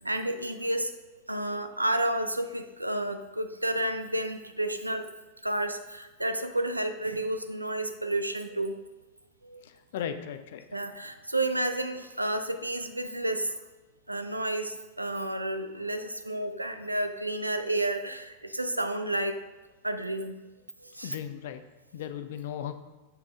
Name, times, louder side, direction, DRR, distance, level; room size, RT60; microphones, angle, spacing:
voice 1, 0.0-0.9 1.3-5.1 5.4-8.8 9.4-9.6 10.7-13.6 14.1-19.4 19.8-20.4 20.8-21.1, right 1 dB, 85° right, 8 dB, 0.5 m, -31 dB
voice 2, 9.6-10.8 21.0-21.6 21.9-22.7, left 9 dB, 55° left, 10 dB, 0.6 m, -37 dB
7.5 x 5.9 x 3.6 m, 1.1 s
figure-of-eight pair, 90°, 0 cm